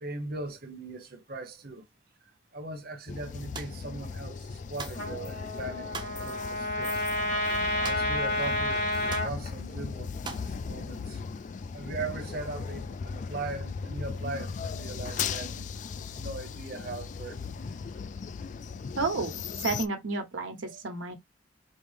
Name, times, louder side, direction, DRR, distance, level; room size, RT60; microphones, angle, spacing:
voice 1, 0.0-1.8 2.5-7.0 7.8-11.2 11.7-15.7 16.2-17.4 20.7-20.8, right 3 dB, 50° right, 0.9 m, -39 dB
sound 1, 3.1-19.9, left 5 dB, 40° left, 0.3 m, -37 dB
sound 2, 3.5-3.8 4.8-5.1 5.9-6.2 7.8-8.2 8.5-8.6 9.1-9.3 10.2-10.5, right 4 dB, 25° right, 0.6 m, -40 dB
Trumpet, 4.9-9.3, left 1 dB, 75° left, 2.0 m, -30 dB
voice 2, 19.0-21.2, right 3 dB, 90° right, 1.2 m, -31 dB
5.2 x 2.1 x 3.2 m
head